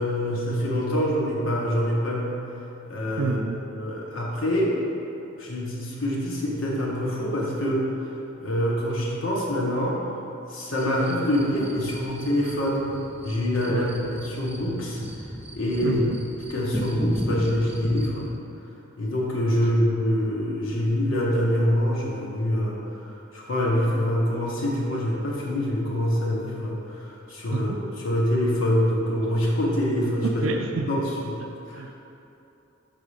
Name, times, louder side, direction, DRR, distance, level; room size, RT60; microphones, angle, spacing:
voice 1, 0.0-2.4 2.9-3.4 3.7-4.7 5.4-7.9 8.4-10.0 10.5-12.9 13.2-13.9 14.2-15.0 15.5-16.0 16.5-18.2 19.0-30.3 30.9-31.3 31.7-31.8, equal, 80° left, -4 dB, 1.3 m, -25 dB
voice 2, 3.2-3.6 13.7-14.0 15.8-16.2 27.5-27.8 30.2-31.0 31.4-32.1, right 4 dB, 75° right, 4 dB, 0.4 m, -29 dB
sound 1, 10.8-18.3, equal, 10° right, 0.5 m, -37 dB
6.6 x 3.8 x 4.9 m, 2.9 s
head